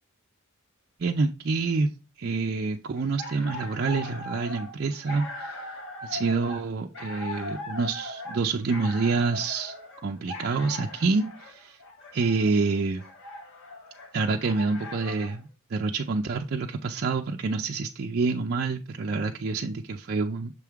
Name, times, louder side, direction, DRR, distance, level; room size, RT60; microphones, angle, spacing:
voice 1, 1.0-1.9 2.2-5.6 6.0-9.7 10.0-11.8 12.1-13.0 14.1-20.5, right 4 dB, 45° right, 0.5 m, -27 dB
sound 1, 3.0-15.4, left 2 dB, 65° left, 1.4 m, -40 dB
6.8 x 3.6 x 4.5 m
head